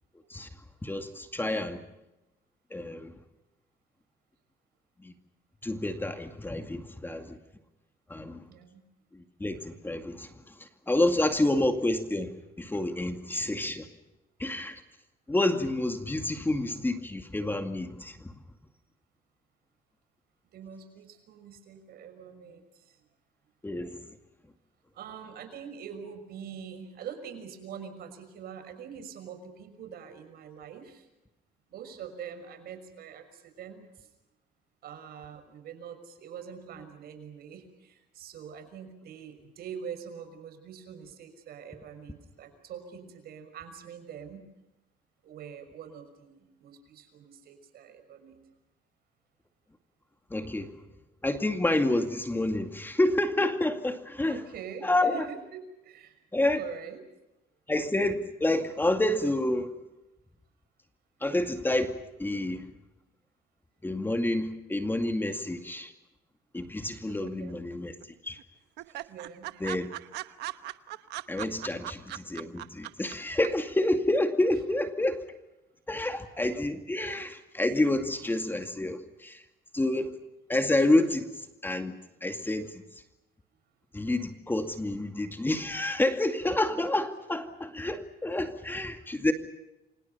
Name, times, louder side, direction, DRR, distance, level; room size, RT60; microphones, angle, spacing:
voice 1, 0.8-1.8 2.7-3.2 5.0-5.1 5.6-7.4 8.1-8.4 9.1-13.9 14.4-14.8 15.3-18.4 23.6-24.1 50.3-50.8 51.2-54.4 54.8-55.3 56.3-56.6 57.7-59.7 61.2-62.7 63.8-65.9 66.5-67.9 68.2-68.4 69.6-69.9 71.3-75.2 75.9-79.4 79.7-80.2 80.5-83.0 83.9-89.3, left 1 dB, 10° left, 6 dB, 2.3 m, -29 dB
voice 2, 8.5-8.8 20.5-23.0 24.9-31.1 31.7-34.1 34.8-44.4 45.2-48.4 54.3-56.2 56.5-57.0 67.2-67.6 69.1-69.5 82.4-82.5, right 7 dB, 65° right, 8 dB, 6.1 m, -44 dB
sound 1, 67.1-67.7 68.0-68.1 68.4-68.5 68.8-73.1 73.4-73.5, right 16 dB, 85° right, 1.1 m, -38 dB
29.5 x 25.5 x 5.7 m, 0.96 s
cardioid pair, 110°, 17 cm